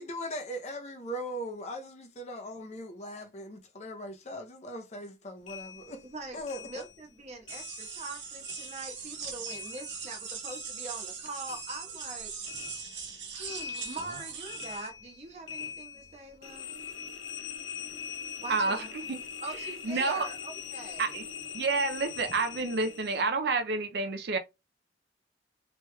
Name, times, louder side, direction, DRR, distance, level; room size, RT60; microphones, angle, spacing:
voice 1, 0.0-6.0 6.3-6.9, equal, 35° left, 0.6 m, -39 dB
sound 1, 5.5-8.2 8.4-11.2 11.5-23.3, left 6 dB, 90° left, 0.6 m, -43 dB
voice 2, 6.0-12.3 13.3-16.7 18.4-18.9 19.4-21.1, right 2 dB, 35° right, 1.0 m, -43 dB
sound 2, 7.5-14.9, right 6 dB, 80° right, 0.9 m, -41 dB
voice 3, 18.5-19.2 19.9-20.3 21.0-21.2 21.5-24.4, right 3 dB, 60° right, 0.4 m, -29 dB
3.1 x 3.0 x 2.2 m
head